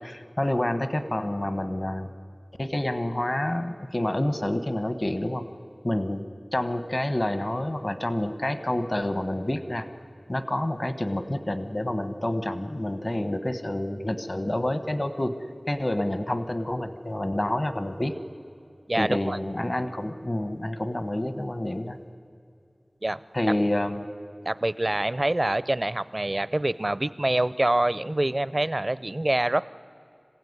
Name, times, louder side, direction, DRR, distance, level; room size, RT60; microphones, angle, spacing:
voice 1, 0.0-2.1 2.6-5.5 5.8-6.2 6.5-9.9 10.3-15.3 15.7-18.1 19.0-22.0 23.3-24.1, left 1 dB, 40° left, 10 dB, 1.3 m, -28 dB
voice 2, 18.9-19.4 23.0-23.2 24.4-29.6, right 1 dB, 45° right, 17 dB, 0.6 m, -25 dB
26.5 x 16.0 x 9.7 m, 2.5 s
wide cardioid pair, 45°, 0 cm